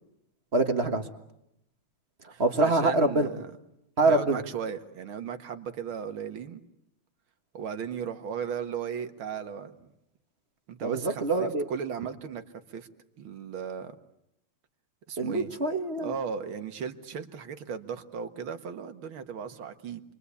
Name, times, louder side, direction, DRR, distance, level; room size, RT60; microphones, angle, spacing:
voice 1, 0.5-1.0 2.4-3.3 4.0-4.4 10.8-11.7 15.2-16.1, right 2 dB, 35° right, 7 dB, 1.6 m, -25 dB
voice 2, 2.3-3.5 4.0-6.6 7.5-9.9 10.7-12.4 12.7-12.9 13.2-14.0 15.1-15.5 16.0-20.0, right 7 dB, 85° right, 8 dB, 2.3 m, -36 dB
29.5 x 23.5 x 8.4 m, 0.80 s
omnidirectional pair, 2.2 m